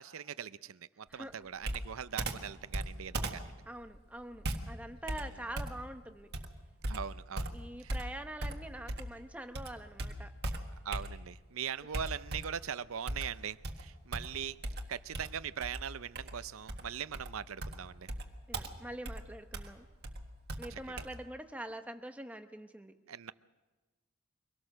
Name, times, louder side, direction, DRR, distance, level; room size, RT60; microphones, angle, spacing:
voice 1, 0.0-3.5 6.9-7.5 7.8-7.9 10.8-14.6 14.9-18.1 20.7-20.8 23.1-23.3, right 8 dB, 75° right, 15 dB, 0.6 m, -41 dB
Computer keyboard, 1.6-9.2 9.5-11.4 11.9-12.7 13.1-21.1, right 1 dB, 50° right, 1.6 m, -39 dB
voice 2, 3.7-6.3 7.5-10.3 18.5-19.8 20.6-22.9, right 1 dB, 5° right, 7 dB, 0.8 m, -45 dB
24.0 x 18.0 x 6.5 m, 1.2 s
head